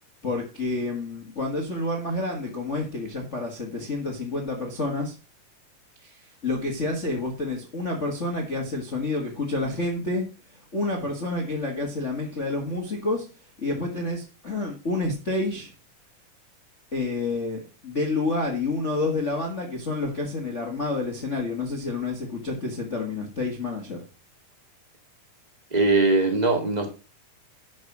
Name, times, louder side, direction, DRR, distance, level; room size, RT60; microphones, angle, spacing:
voice 1, 0.2-5.1 6.0-6.1 6.4-10.3 10.7-13.3 13.6-15.7 16.9-24.0, left 2 dB, 30° left, 1.4 m, -29 dB
voice 2, 25.7-26.9, right 3 dB, 15° right, 1.4 m, -21 dB
11.5 x 5.4 x 5.9 m
omnidirectional pair, 3.8 m